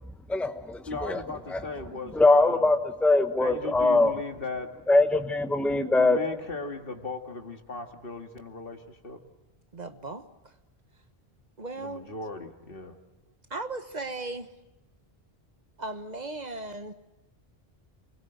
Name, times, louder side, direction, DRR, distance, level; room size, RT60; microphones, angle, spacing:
voice 1, 0.3-1.2 1.5-1.7 2.1-4.2 4.9-6.3, left 2 dB, ahead, 8 dB, 1.1 m, -22 dB
voice 2, 0.9-2.7 3.4-4.9 5.8-9.2 11.8-13.0, left 3 dB, 60° left, 5 dB, 2.2 m, -37 dB
voice 3, 9.7-10.5 11.6-12.1 13.5-14.5 15.8-16.9, right 2 dB, 45° right, 9 dB, 1.3 m, -37 dB
28.0 x 21.0 x 8.0 m, 0.97 s
omnidirectional pair, 1.0 m